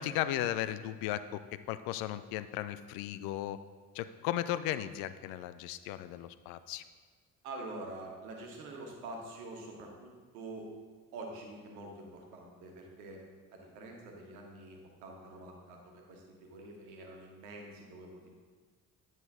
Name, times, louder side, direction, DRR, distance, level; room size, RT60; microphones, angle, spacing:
voice 1, 0.0-1.4 1.7-3.6 3.9-6.8, left 12 dB, 55° left, 13 dB, 0.5 m, -36 dB
voice 2, 7.4-10.7 11.1-13.2 13.5-18.3, right 2 dB, 70° right, 1 dB, 1.4 m, -46 dB
9.5 x 5.2 x 3.6 m, 1.5 s
figure-of-eight pair, 50°, 44 cm